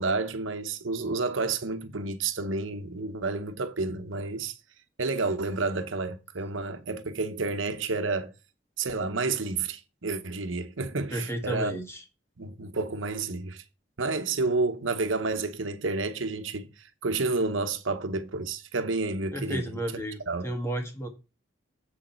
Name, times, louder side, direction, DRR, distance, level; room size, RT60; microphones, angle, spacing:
voice 1, 0.0-4.5 5.0-8.3 8.8-11.7 12.4-13.6 14.0-16.7 17.0-19.6 20.3-20.5, right 3 dB, 85° right, 1.0 m, -30 dB
voice 2, 11.1-12.0 19.3-21.1, right 1 dB, 15° left, 1.6 m, -32 dB
7.8 x 6.4 x 4.4 m
head